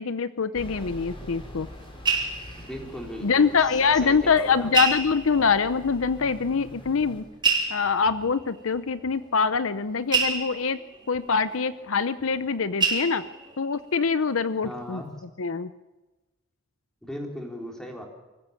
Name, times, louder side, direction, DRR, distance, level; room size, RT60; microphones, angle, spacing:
voice 1, 0.0-1.7 3.2-7.2 7.7-10.8 11.1-13.2 13.6-15.0 15.4-15.7, left 5 dB, 75° left, 14 dB, 0.7 m, -24 dB
sound 1, 0.5-7.2, equal, 25° left, 3.9 m, -44 dB
sound 2, 1.4-3.7 3.9-4.0 4.7-5.7 6.5-6.6 7.4-12.5 12.8-13.7 14.2-14.5 14.8-14.9, right 5 dB, 25° right, 3.9 m, -29 dB
voice 2, 2.6-4.7 5.3-5.5 14.6-15.1 17.0-18.0, equal, 5° left, 1 dB, 3.7 m, -38 dB
25.0 x 14.5 x 7.3 m, 1.2 s
head